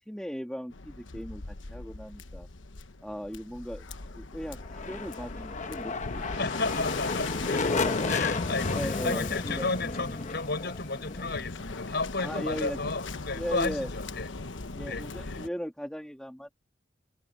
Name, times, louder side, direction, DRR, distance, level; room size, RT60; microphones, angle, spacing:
voice 1, 0.1-2.5 3.0-3.9 4.2-6.5 7.6-8.4 8.7-9.7 12.2-12.8 13.3-13.9 14.7-16.5, equal, 5° left, 2.1 m, -38 dB
Waves surf, 0.7-15.5, left 3 dB, 85° left, 1.2 m, -39 dB
sound 1, 4.6-12.4, left 3 dB, 40° left, 1.0 m, -33 dB
voice 2, 6.4-7.8 8.1-14.3 14.8-15.4, left 3 dB, 60° left, 6.5 m, -33 dB
head